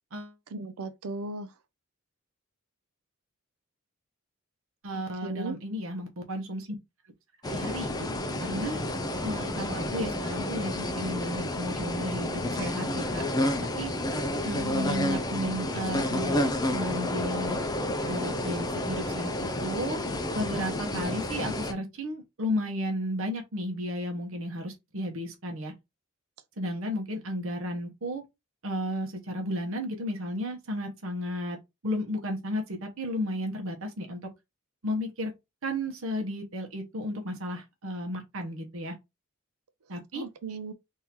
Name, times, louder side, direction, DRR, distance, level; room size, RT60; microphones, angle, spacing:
voice 1, 0.5-1.5 5.2-5.6 40.1-40.7, right 3 dB, 85° right, 0.5 m, -36 dB
voice 2, 4.8-6.7 7.4-8.1 8.4-8.9 9.2-13.2 13.6-13.9 14.4-16.4 16.7-17.6 18.1-25.7 26.6-28.2 28.6-31.6 31.8-34.2 34.8-35.3 35.6-38.9 39.9-40.2, equal, 65° right, 0.9 m, -33 dB
sound 1, 7.4-21.7, left 1 dB, 20° left, 0.5 m, -30 dB
3.7 x 2.7 x 2.9 m
head